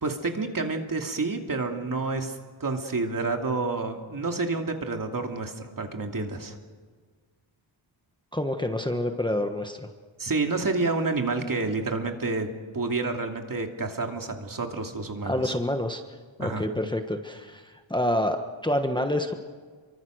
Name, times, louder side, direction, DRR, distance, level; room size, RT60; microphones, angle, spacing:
voice 1, 0.0-6.6 10.2-15.5 16.4-16.6, right 3 dB, 40° right, 3 dB, 2.7 m, -29 dB
voice 2, 8.3-9.9 15.2-16.0 16.4-19.3, left 1 dB, 10° left, 5 dB, 1.4 m, -27 dB
29.5 x 24.0 x 6.5 m, 1.5 s
wide cardioid pair, 115°, 48 cm